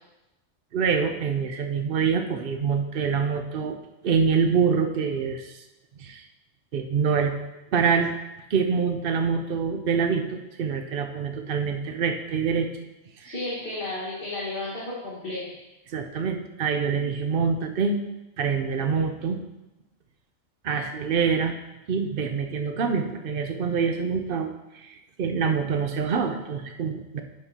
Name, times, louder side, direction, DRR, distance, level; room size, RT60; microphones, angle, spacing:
voice 1, 0.7-3.8 4.0-5.6 6.0-6.2 6.7-7.3 7.7-8.1 8.5-12.7 13.2-13.3 15.9-18.0 18.4-19.4 20.6-21.5 21.9-24.9 25.2-27.2, right 6 dB, 55° right, 5 dB, 0.8 m, -25 dB
voice 2, 13.2-15.4, left 2 dB, 45° left, -8 dB, 1.9 m, -32 dB
10.5 x 5.2 x 2.9 m, 0.98 s
omnidirectional pair, 1.3 m